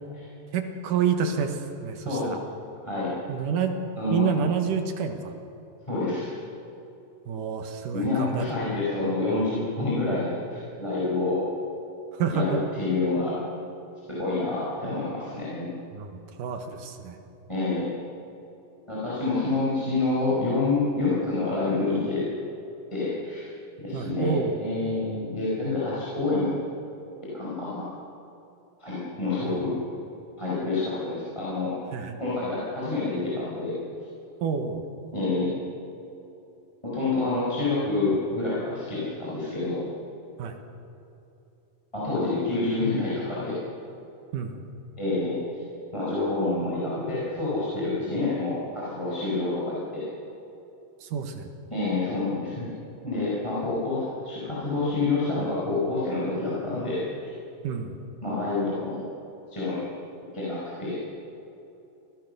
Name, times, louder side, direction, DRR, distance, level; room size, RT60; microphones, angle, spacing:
voice 1, 0.5-2.4 3.3-3.8 4.1-5.3 7.3-8.5 12.2-12.6 15.9-17.2 23.9-24.5 29.4-29.6 31.9-32.2 34.4-34.8 40.4-40.5 44.3-44.6 51.0-51.5 57.6-57.9, right 6 dB, 70° right, 6 dB, 2.8 m, -28 dB
voice 2, 2.0-2.4 2.8-3.1 4.0-4.3 5.9-6.3 7.9-11.4 12.3-13.4 14.1-15.7 17.5-17.9 18.9-22.3 22.9-23.5 23.8-26.5 27.2-27.9 28.8-29.7 30.4-31.7 32.2-33.7 35.1-35.5 36.8-39.8 41.9-43.6 45.0-45.6 45.9-50.1 51.7-52.7 53.0-57.3 58.2-59.0 59.5-59.8 60.3-61.0, left 3 dB, 10° left, -8 dB, 4.8 m, -27 dB
23.5 x 17.0 x 6.8 m, 2.9 s
omnidirectional pair, 4.1 m